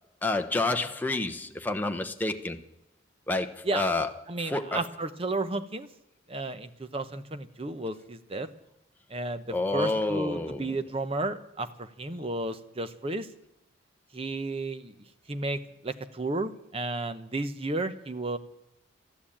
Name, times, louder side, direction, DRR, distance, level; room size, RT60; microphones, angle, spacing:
voice 1, 0.2-2.6 3.3-4.1 4.4-4.8 9.5-10.7, left 2 dB, 10° left, 0.9 m, -29 dB
voice 2, 4.3-5.9 6.3-8.5 9.1-13.3 14.1-14.9 15.3-18.4, right 2 dB, 30° right, 0.8 m, -33 dB
13.0 x 11.0 x 8.6 m
head